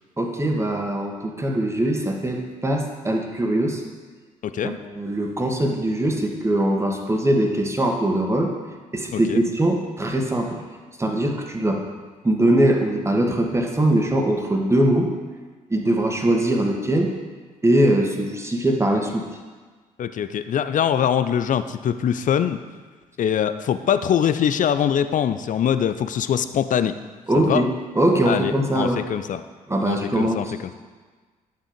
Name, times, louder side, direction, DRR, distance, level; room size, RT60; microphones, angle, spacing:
voice 1, 0.2-3.8 4.6-8.5 8.9-10.6 11.0-11.8 12.2-15.1 15.7-17.1 17.6-19.3 27.3-27.7 27.9-29.0 29.7-30.5, right 1 dB, 15° right, 2 dB, 1.9 m, -21 dB
voice 2, 4.4-4.8 9.1-9.5 20.0-22.6 23.2-27.0 27.3-27.6 28.3-29.4 29.9-30.5, left 9 dB, 45° left, 11 dB, 0.7 m, -23 dB
11.0 x 7.7 x 5.2 m, 1.4 s
figure-of-eight pair, 45°, 18 cm